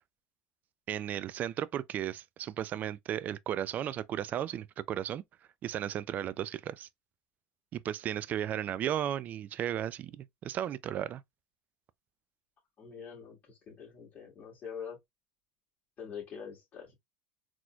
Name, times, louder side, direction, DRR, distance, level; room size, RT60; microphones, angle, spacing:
voice 1, 0.9-5.2 5.6-6.9 7.7-11.2, right 10 dB, 40° right, 0.3 m, -35 dB
voice 2, 12.8-15.0 16.0-16.9, left 7 dB, 40° left, 1.6 m, -44 dB
4.1 x 3.0 x 2.2 m
supercardioid pair, 100°, 4 cm